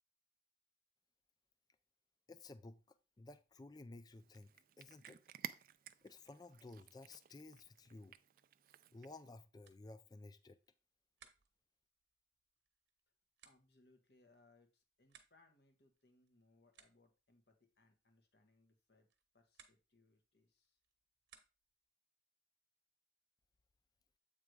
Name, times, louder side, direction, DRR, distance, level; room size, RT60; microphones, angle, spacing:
voice 1, 2.3-4.5 4.8-5.2 6.0-8.2 8.9-10.6, left 2 dB, 20° left, 0.4 m, -55 dB
Cat, 4.1-9.3, right 9 dB, 50° right, 0.4 m, -54 dB
sound 1, 9.6-21.9, right 7 dB, 80° right, 1.1 m, -71 dB
voice 2, 13.4-19.1 19.3-20.8, left 2 dB, 65° left, 1.5 m, -72 dB
7.9 x 3.6 x 4.8 m
head